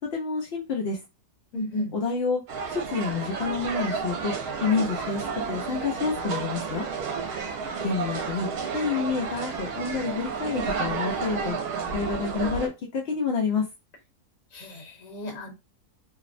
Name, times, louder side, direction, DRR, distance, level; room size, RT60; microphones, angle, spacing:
voice 1, 0.1-1.0 1.9-2.4 2.7-4.3 4.6-5.2 5.5-6.9 7.8-11.6 11.9-13.7, left 5 dB, 85° left, 0.5 m, -28 dB
voice 2, 1.5-1.9 14.5-15.5, left 1 dB, 60° left, 1.1 m, -33 dB
sound 1, 2.5-12.7, right 5 dB, 70° right, 1.1 m, -31 dB
2.7 x 2.0 x 2.4 m
omnidirectional pair, 1.7 m